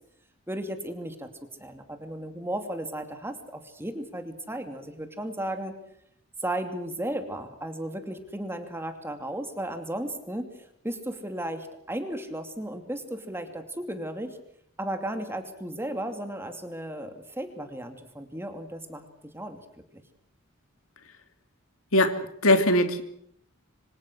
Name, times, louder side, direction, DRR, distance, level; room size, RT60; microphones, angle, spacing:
voice 1, 0.5-1.3 1.6-5.7 6.4-10.5 10.8-14.4 14.8-19.1 19.3-20.0, right 1 dB, 10° right, 6 dB, 2.6 m, -35 dB
voice 2, 21.9-23.0, left 1 dB, 70° left, 8 dB, 2.7 m, -21 dB
26.5 x 25.5 x 6.3 m, 0.69 s
head